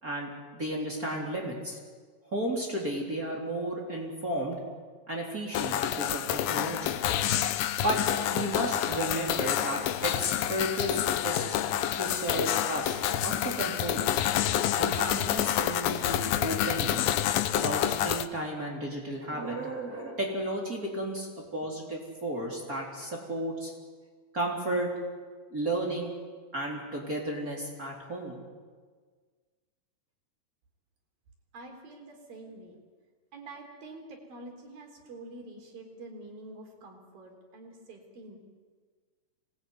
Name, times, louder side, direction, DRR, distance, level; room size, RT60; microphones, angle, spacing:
voice 1, 0.0-1.8 2.3-4.6 5.1-7.0 7.8-8.0 8.3-11.6 12.0-14.2 14.8-17.1 17.5-23.7 24.3-24.9 25.5-26.1 26.5-28.4, right 1 dB, 25° right, -2 dB, 4.0 m, -33 dB
sound 1, 5.5-18.3, left 11 dB, 80° left, 2.6 m, -28 dB
voice 2, 31.5-32.8 33.3-38.4, right 2 dB, 80° right, 2 dB, 5.5 m, -47 dB
26.0 x 19.5 x 9.6 m, 1.5 s
omnidirectional pair, 4.0 m